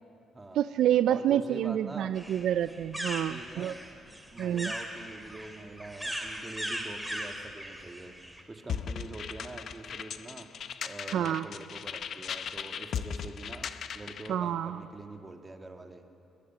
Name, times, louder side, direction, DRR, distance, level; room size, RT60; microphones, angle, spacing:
voice 1, 0.6-3.7 4.4-4.7 11.1-11.5 14.3-14.8, right 10 dB, 75° right, 13 dB, 0.4 m, -28 dB
voice 2, 1.1-2.1 3.2-3.8 4.0-8.2 8.5-10.5 10.8-16.0, right 2 dB, 20° right, 5 dB, 1.9 m, -45 dB
sound 1, 2.2-8.4, equal, 5° right, 2.7 m, -39 dB
sound 2, 8.7-14.3, left 7 dB, 60° left, 0.7 m, -38 dB
21.5 x 21.5 x 6.0 m, 2.6 s
cardioid pair, 90°, 0 cm